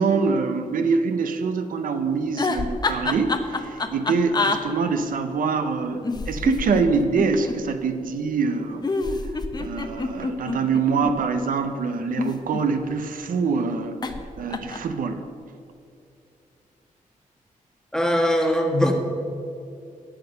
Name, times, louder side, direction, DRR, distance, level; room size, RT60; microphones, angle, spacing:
voice 1, 0.0-8.9 9.2-14.0 14.4-15.2, right 5 dB, 75° right, 8 dB, 0.7 m, -24 dB
sound 1, 2.3-4.6 6.0-7.6 8.8-11.1 12.0-13.0 14.0-14.2 14.5-14.9, left 3 dB, 30° left, 0.8 m, -27 dB
voice 2, 17.9-18.9, equal, 5° left, 2 dB, 1.4 m, -21 dB
8.9 x 8.6 x 6.5 m, 2.6 s
wide cardioid pair, 110°, 14 cm